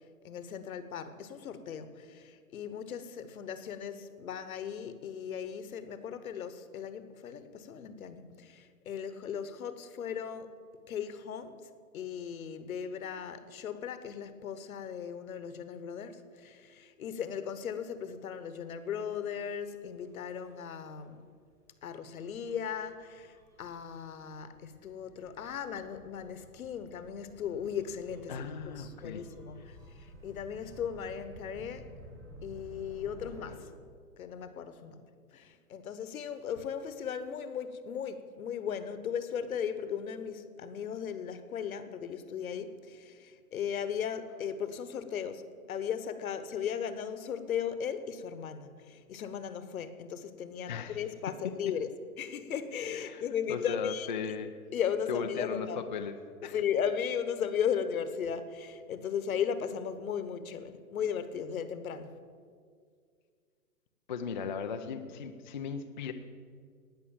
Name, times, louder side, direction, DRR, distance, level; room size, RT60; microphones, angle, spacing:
voice 1, 0.2-10.6 10.9-11.7 11.9-21.2 21.8-31.9 32.4-33.7 34.2-35.0 35.3-51.9 52.2-54.1 54.7-55.8 56.4-62.1, left 8 dB, 65° left, 1.2 m, -37 dB
Gull seagull / Waves surf / Siren, 18.8-33.5, right 1 dB, 5° right, 1.5 m, -54 dB
voice 2, 28.3-29.2 50.7-51.0 52.9-53.2 53.5-54.5 55.1-56.1 56.4-56.6 64.1-66.1, left 6 dB, 35° left, 0.4 m, -37 dB
18.5 x 6.3 x 7.3 m
hypercardioid pair, 160°, 45 cm